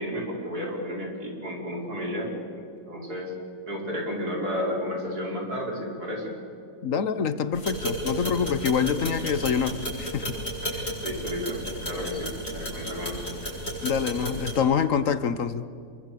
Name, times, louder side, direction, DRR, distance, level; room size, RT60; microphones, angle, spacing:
voice 1, 0.0-2.3 2.9-3.3 3.7-6.3 11.0-13.4, equal, 75° right, -1 dB, 5.7 m, -32 dB
voice 2, 6.8-10.4 10.7-10.9 13.8-15.7, left 7 dB, 60° left, 13 dB, 1.3 m, -26 dB
sound 1, 7.5-14.6, equal, 40° left, 7.6 m, -33 dB
26.5 x 23.5 x 8.5 m, 2.5 s
omnidirectional pair, 1.7 m